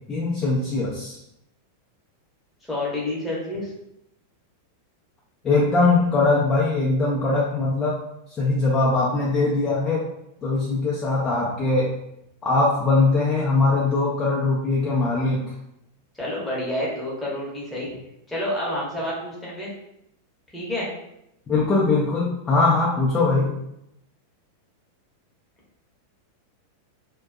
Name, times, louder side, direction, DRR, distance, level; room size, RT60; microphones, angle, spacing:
voice 1, 0.1-1.2 5.4-8.0 8.4-10.0 10.4-11.9 12.4-15.4 21.5-23.5, left 3 dB, 25° left, -5 dB, 0.5 m, -21 dB
voice 2, 2.7-3.7 16.2-17.9 18.3-19.7 20.5-20.9, left 1 dB, 10° left, -6 dB, 0.9 m, -28 dB
2.5 x 2.1 x 2.4 m, 0.81 s
figure-of-eight pair, 90°, 0 cm